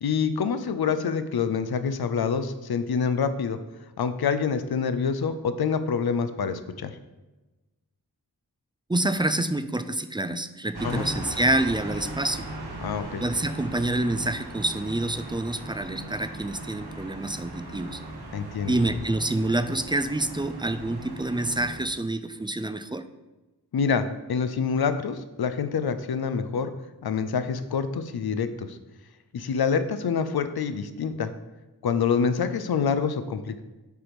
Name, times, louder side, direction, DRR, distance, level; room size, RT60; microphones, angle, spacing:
voice 1, 0.0-3.6 4.0-6.9 10.8-11.1 12.8-13.2 18.3-18.8 23.7-26.7 27.0-28.8 29.3-31.3 31.8-33.6, left 6 dB, 70° left, 10 dB, 0.6 m, -26 dB
voice 2, 8.9-12.5 13.2-18.0 18.7-23.0, right 1 dB, 15° right, 11 dB, 0.4 m, -27 dB
sound 1, 10.7-21.8, right 1 dB, 75° right, 1.4 m, -38 dB
8.1 x 3.0 x 5.1 m, 1.1 s
cardioid pair, 45°, 39 cm